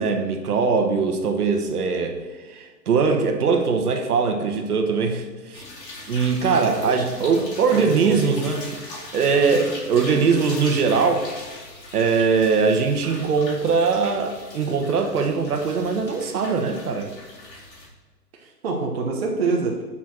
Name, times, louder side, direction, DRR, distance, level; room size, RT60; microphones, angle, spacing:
voice 1, 0.0-5.6 6.1-11.3 11.9-17.1, right 5 dB, 65° right, 5 dB, 1.3 m, -21 dB
sound 1, 5.5-17.9, left 2 dB, 80° left, 3.0 m, -40 dB
voice 2, 6.6-7.5 7.7-8.4 9.3-9.6 18.3-19.8, right 4 dB, 35° right, 0 dB, 0.9 m, -27 dB
6.7 x 5.7 x 6.3 m, 1.4 s
hypercardioid pair, 170°, 50 cm